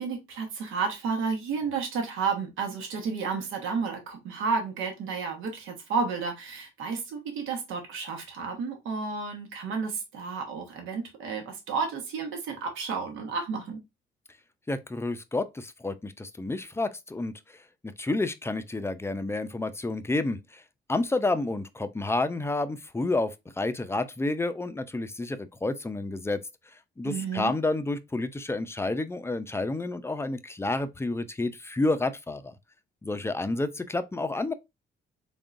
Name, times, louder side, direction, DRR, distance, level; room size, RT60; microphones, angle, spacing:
voice 1, 0.0-13.8 27.0-27.5, right 5 dB, 90° right, 1.1 m, -31 dB
voice 2, 14.7-17.3 18.0-20.4 20.9-23.3 23.6-26.4 27.0-32.5 33.0-34.5, left 2 dB, 15° left, 0.4 m, -29 dB
3.7 x 3.5 x 2.5 m
cardioid pair, 90°, 20 cm